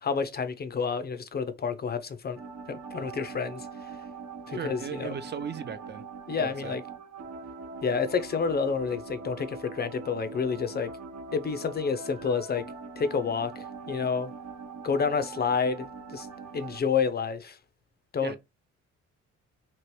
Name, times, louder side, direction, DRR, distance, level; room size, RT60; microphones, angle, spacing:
voice 1, 0.0-2.4 2.7-3.7 4.5-5.1 6.3-6.8 7.8-10.9 11.3-12.7 13.0-14.3 14.8-16.3 16.5-17.6 18.1-18.4, left 5 dB, 35° left, 0.4 m, -29 dB
sound 1, 2.4-16.8, right 4 dB, 60° right, 1.0 m, -42 dB
voice 2, 4.5-6.0 6.4-6.8 18.2-18.4, right 7 dB, 35° right, 0.4 m, -37 dB
3.0 x 2.9 x 3.0 m
cardioid pair, 90°, 30 cm